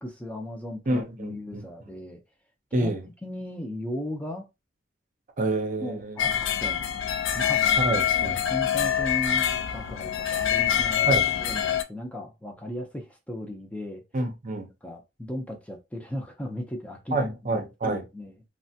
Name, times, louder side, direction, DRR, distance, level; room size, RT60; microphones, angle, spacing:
voice 1, 0.0-2.2 2.7-3.0 3.2-4.5 5.8-6.8 7.3-7.7 8.1-14.0 14.8-18.3, left 1 dB, 5° left, 0.5 m, -36 dB
voice 2, 0.9-1.7 2.7-3.0 5.4-6.3 7.8-8.4 11.1-11.3 14.1-14.7 17.1-18.0, right 2 dB, 45° right, 0.6 m, -28 dB
sound 1, 6.2-11.8, left 9 dB, 80° left, 0.4 m, -25 dB
3.2 x 2.2 x 2.7 m
head